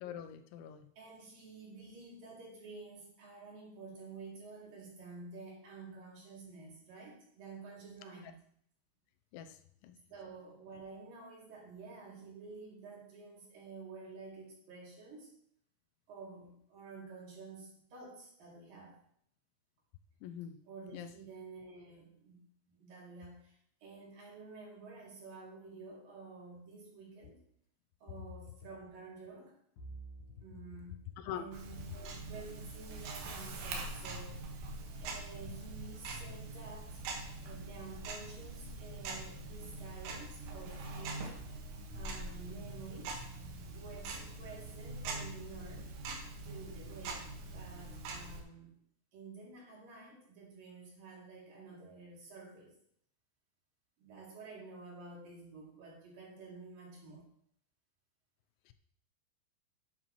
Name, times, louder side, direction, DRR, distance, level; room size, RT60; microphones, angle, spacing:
voice 1, 0.0-0.9 9.3-9.6 9.8-10.0 20.2-20.6 20.9-21.1 31.2-31.5 58.7-58.8, left 9 dB, 90° left, 9 dB, 3.1 m, -43 dB
voice 2, 1.0-8.4 10.1-15.3 16.1-19.0 20.7-22.4 22.7-27.4 28.0-29.6 30.4-31.0 31.3-34.4 35.0-37.0 37.4-41.3 41.9-43.2 43.7-45.9 46.4-48.7 49.1-52.7 54.0-57.3, right 4 dB, 55° right, -3 dB, 4.3 m, -50 dB
Bowed string instrument, 29.8-34.3, right 3 dB, 65° left, 2.5 m, -56 dB
Tick-tock, 31.5-48.4, right 2 dB, 75° right, 3.7 m, -43 dB
11.0 x 9.7 x 3.1 m, 0.67 s
omnidirectional pair, 5.1 m